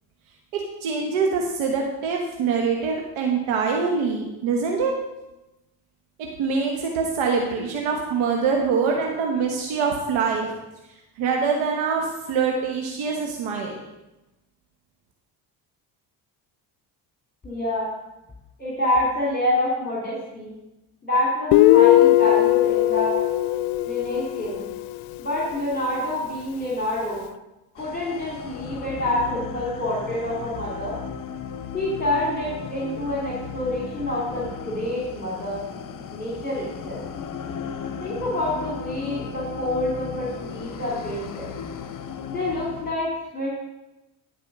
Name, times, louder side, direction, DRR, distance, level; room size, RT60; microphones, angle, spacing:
voice 1, 0.5-4.9 6.2-10.5 11.2-13.8, right 5 dB, 75° right, 1 dB, 1.3 m, -24 dB
voice 2, 17.4-17.9 18.6-20.5 21.0-23.2 23.9-24.6 25.2-27.2 27.8-30.9 31.7-35.6 36.1-37.0 38.0-41.5 42.3-43.5, left 1 dB, 20° left, -4 dB, 2.7 m, -27 dB
Guitar, 21.5-25.0, left 16 dB, 70° left, 0.6 m, -18 dB
sound 1, 27.8-42.9, left 6 dB, 40° left, 0.9 m, -36 dB
12.0 x 4.9 x 6.1 m, 0.98 s
supercardioid pair, 65°, 49 cm